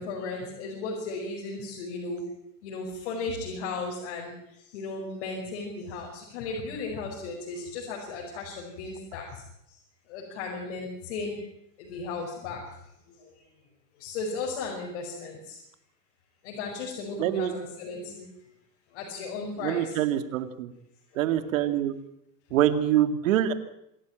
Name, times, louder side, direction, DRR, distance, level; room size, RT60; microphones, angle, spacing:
voice 1, 0.0-2.3 2.6-4.3 4.7-9.4 10.1-11.4 11.8-12.6 13.2-13.3 14.0-15.6 16.4-18.3 18.9-20.0, left 3 dB, 45° left, -1 dB, 5.6 m, -35 dB
voice 2, 17.2-17.5 19.6-20.7 21.2-21.9 22.5-23.5, right 11 dB, 55° right, 10 dB, 2.2 m, -25 dB
26.5 x 14.0 x 9.1 m, 0.79 s
supercardioid pair, 170°, 48 cm